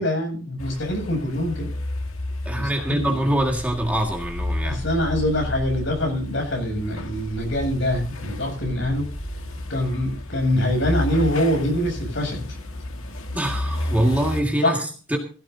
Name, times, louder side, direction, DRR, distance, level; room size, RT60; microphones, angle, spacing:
voice 1, 0.0-1.7 2.5-3.2 4.6-9.1 9.7-12.6 14.6-14.8, left 1 dB, 60° left, 2 dB, 7.9 m, -24 dB
sound 1, 0.6-14.4, left 1 dB, 80° left, 2.0 m, -31 dB
voice 2, 2.4-4.8 13.3-15.2, right 1 dB, 5° right, 1 dB, 1.9 m, -24 dB
18.5 x 16.0 x 2.7 m, 0.37 s
head